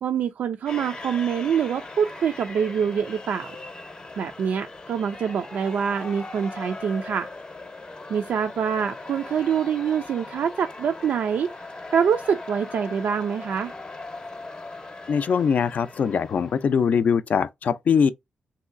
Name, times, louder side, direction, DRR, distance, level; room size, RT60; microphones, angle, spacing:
voice 1, 0.0-3.5 4.2-7.3 8.1-11.5 11.9-13.7, right 7 dB, 75° right, 0.3 m, -25 dB
sound 1, 0.7-16.9, left 3 dB, 30° left, 0.7 m, -39 dB
voice 2, 15.1-18.1, left 6 dB, 60° left, 0.4 m, -22 dB
3.1 x 2.7 x 2.5 m
cardioid pair, 100°, 3 cm